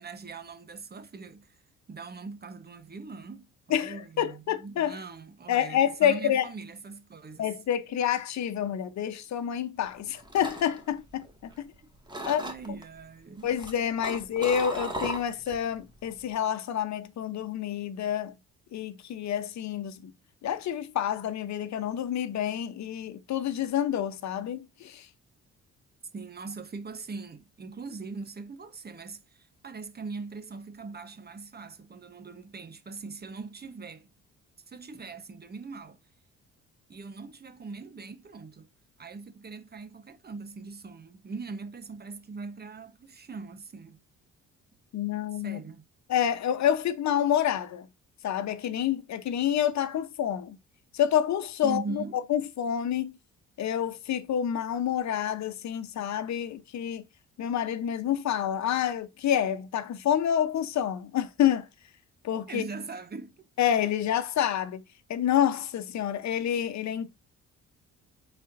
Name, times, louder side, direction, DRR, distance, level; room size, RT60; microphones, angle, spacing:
voice 1, 0.0-1.6 1.9-7.5 12.2-13.5 26.1-34.1 34.7-36.0 36.9-38.7 39.0-44.0 45.3-45.8 51.6-52.2 62.5-63.5, right 4 dB, 35° right, 1.1 m, -41 dB
voice 2, 3.7-5.0 5.5-6.5 7.4-11.3 11.6-11.7 12.3-12.4 13.4-18.3 18.7-20.1 20.4-25.1 44.9-45.6 46.1-47.9 48.2-50.6 50.9-52.0 52.3-53.2 53.6-57.0 57.4-61.7 62.2-62.6 63.6-64.8 65.1-67.1, left 10 dB, 65° left, 0.9 m, -28 dB
sound 1, 9.9-11.7 12.1-12.8 13.4-15.6 16.0-16.3, right 1 dB, 15° right, 2.0 m, -37 dB
8.3 x 4.3 x 2.6 m
cardioid pair, 90°, 30 cm